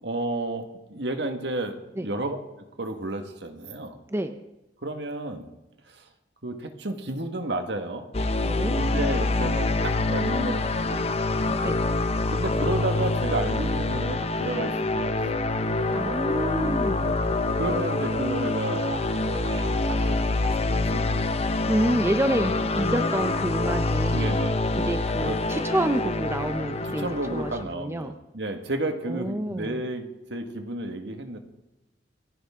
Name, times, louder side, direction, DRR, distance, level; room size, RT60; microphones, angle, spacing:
voice 1, 0.0-4.0 4.8-5.4 5.9-6.0 6.4-8.1 8.8-11.1 12.3-15.5 17.6-18.9 19.9-21.2 24.1-24.6 25.2-25.7 26.8-31.4, right 2 dB, 65° right, 6 dB, 1.7 m, -32 dB
sound 1, 8.1-27.6, left 2 dB, 35° left, 0.7 m, -26 dB
voice 2, 8.4-8.8 11.5-11.8 15.9-17.1 21.7-24.3 24.8-28.2 29.1-29.8, right 1 dB, 15° right, 8 dB, 0.6 m, -28 dB
sound 2, 14.9-20.1, right 1 dB, 85° right, 1.9 m, -38 dB
28.0 x 10.0 x 3.7 m, 0.99 s
head